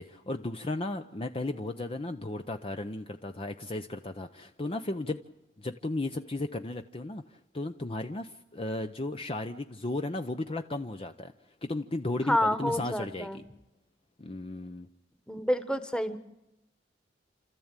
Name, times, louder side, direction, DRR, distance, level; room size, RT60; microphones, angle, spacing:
voice 1, 0.0-5.2 5.6-11.3 11.6-13.4 14.2-14.9, left 2 dB, 30° left, 7 dB, 0.8 m, -35 dB
voice 2, 12.3-13.4 15.3-16.2, equal, 5° left, 10 dB, 1.4 m, -28 dB
29.5 x 14.0 x 9.0 m, 0.93 s
head